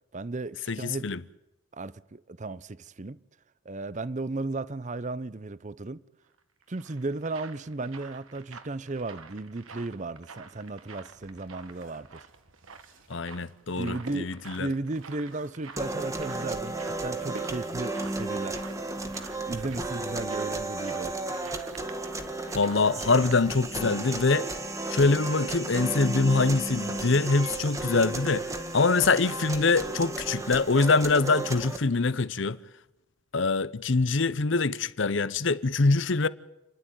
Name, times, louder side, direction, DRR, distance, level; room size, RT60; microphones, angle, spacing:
voice 1, 0.1-1.1 1.7-3.2 3.6-6.0 6.7-12.3 13.8-18.6 19.4-21.2, right 2 dB, 35° right, 0.6 m, -35 dB
voice 2, 0.7-1.2 13.1-14.7 22.5-24.5 24.9-28.5 28.7-32.6 33.3-36.3, left 3 dB, 60° left, 0.8 m, -24 dB
sound 1, 6.4-23.4, right 5 dB, 85° right, 1.7 m, -49 dB
sound 2, 9.8-9.9 10.4-18.4 18.7-18.8 19.1-19.4, right 1 dB, 65° right, 3.3 m, -50 dB
sound 3, 15.8-31.8, right 2 dB, 15° right, 1.7 m, -33 dB
29.5 x 11.5 x 9.3 m
head